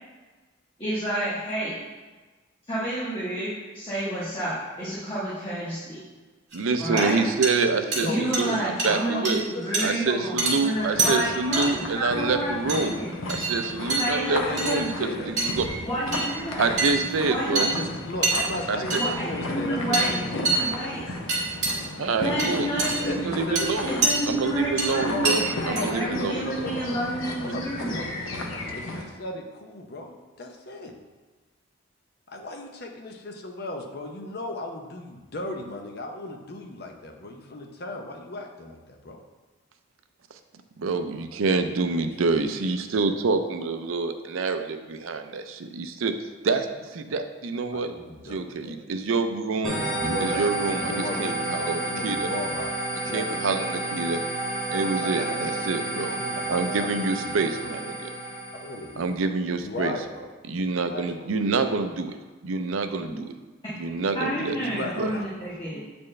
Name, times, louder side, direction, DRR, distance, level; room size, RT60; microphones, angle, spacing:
voice 1, 0.8-1.8 2.7-6.0 6.8-7.2 8.0-12.6 12.8-13.1 14.0-14.8 15.9-16.7 17.3-17.8 18.9-21.0 22.2-23.2 23.8-28.0 63.1-63.2 64.1-65.8, right 1 dB, 25° left, -11 dB, 1.4 m, -30 dB
sound 1, 6.5-6.6 7.0-7.1 7.4-7.6 7.9-8.0 8.3-8.5 8.8-9.0 9.2-9.4 9.7-9.8 10.4-10.5 11.0-11.1 11.5-11.7 12.7-12.9 13.3-13.6 13.9-14.1 14.6-14.8 15.4-15.6 16.1-16.3 16.8-17.1 17.6-17.8 18.2-18.4 18.9-19.1 19.9-20.1 20.4-20.7 21.3-21.8 22.4-23.0 23.6-24.2 24.8-24.9 25.2-25.4 25.8-25.9, right 3 dB, 55° right, 1.8 m, -25 dB
voice 2, 6.5-9.4 9.8-12.9 13.3-15.7 16.6-17.7 18.7-19.0 22.0-22.7 23.1-23.9 24.3-26.7 40.8-46.1 46.4-46.7 46.9-47.9 48.3-49.8 50.2-52.3 52.9-54.2 54.7-56.2 56.5-58.1 59.0-60.0 60.5-62.2 62.4-63.3 63.8-65.1, right 4 dB, 85° right, 8 dB, 0.5 m, -27 dB
voice 3, 7.8-9.2 9.5-11.2 14.3-15.5 17.6-21.1 22.3-22.6 23.0-24.1 25.1-27.0 27.4-28.3 28.7-30.9 32.3-39.2 47.7-48.3 48.7-48.8 50.0-52.7 53.0-53.3 55.0-57.5 58.6-59.1 59.6-60.3 60.9-61.4 64.6-65.5, left 2 dB, 50° left, 2 dB, 0.7 m, -36 dB
sound 2, 10.8-29.0, left 2 dB, 85° left, 0.9 m, -35 dB
sound 3, 49.6-59.0, right 2 dB, ahead, 1.3 m, -30 dB
8.2 x 4.3 x 3.2 m, 1.3 s
head